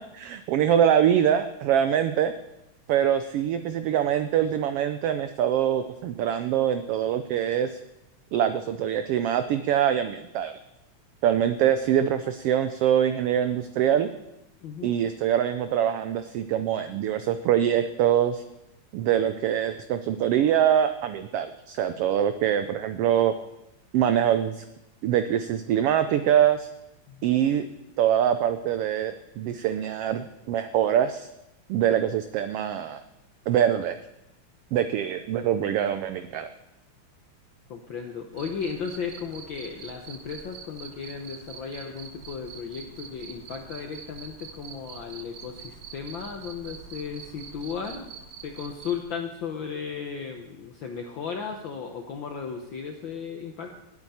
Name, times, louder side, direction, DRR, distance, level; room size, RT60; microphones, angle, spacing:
voice 1, 0.1-2.3 2.9-7.8 8.3-10.6 11.2-14.1 14.8-18.4 18.9-23.3 23.9-24.6 25.0-26.7 27.2-27.7 28.0-31.3 31.7-33.0 33.5-34.0 34.7-36.5, right 10 dB, 85° right, 10 dB, 1.3 m, -24 dB
voice 2, 14.6-14.9 27.1-27.3 37.7-48.0 48.4-53.8, left 6 dB, 70° left, 4 dB, 1.1 m, -35 dB
Cricket, 38.3-49.0, right 7 dB, 70° right, 2.4 m, -45 dB
19.5 x 9.1 x 4.2 m, 0.90 s
omnidirectional pair, 3.3 m